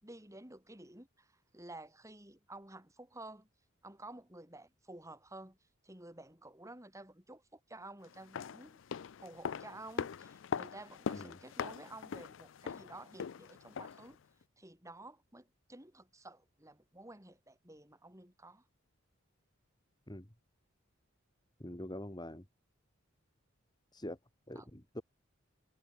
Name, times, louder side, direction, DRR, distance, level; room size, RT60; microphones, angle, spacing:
voice 1, 0.0-3.5 3.8-5.6 5.8-8.8 9.2-14.2 14.6-18.6 24.6-24.7, right 2 dB, 15° right, 4.7 m, -52 dB
sound 1, 8.1-14.1 14.4-14.5, left 6 dB, 65° left, 0.4 m, -41 dB
voice 2, 21.6-22.5 23.9-24.2 24.5-25.0, left 1 dB, 20° left, 2.8 m, -44 dB
head